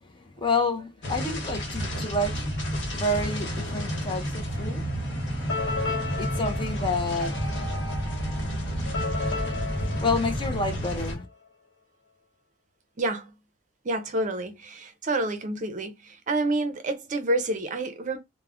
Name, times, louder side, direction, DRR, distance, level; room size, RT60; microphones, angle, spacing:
voice 1, 0.4-2.6 2.9-4.8 6.2-7.4 9.8-11.3, left 2 dB, 25° left, 0.4 m, -29 dB
sound 1, 1.0-11.1, equal, 65° left, 0.8 m, -30 dB
sound 2, 5.5-11.2, left 4 dB, 85° left, 1.0 m, -35 dB
voice 2, 13.0-13.3 13.8-18.2, right 2 dB, 40° right, 0.5 m, -28 dB
2.2 x 2.1 x 3.5 m
head